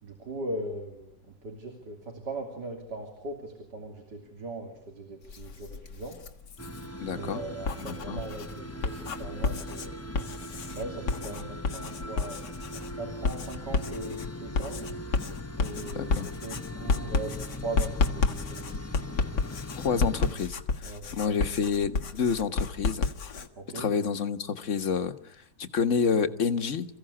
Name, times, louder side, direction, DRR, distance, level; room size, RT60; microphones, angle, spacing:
voice 1, 0.0-6.2 7.1-10.0 10.7-12.5 12.9-14.8 15.6-18.6 20.8-21.2 23.6-23.9, right 2 dB, 85° right, 3 dB, 3.9 m, -39 dB
Writing, 5.2-6.9 7.5-23.5, left 4 dB, 80° left, 2.2 m, -31 dB
sound 1, 6.6-20.3, left 1 dB, 10° left, 0.8 m, -40 dB
voice 2, 7.0-7.4 7.9-8.2 15.9-16.3 19.8-20.6 21.1-23.0 23.7-26.9, left 6 dB, 50° left, 9 dB, 1.6 m, -28 dB
28.0 x 16.0 x 9.9 m, 0.66 s
omnidirectional pair, 1.8 m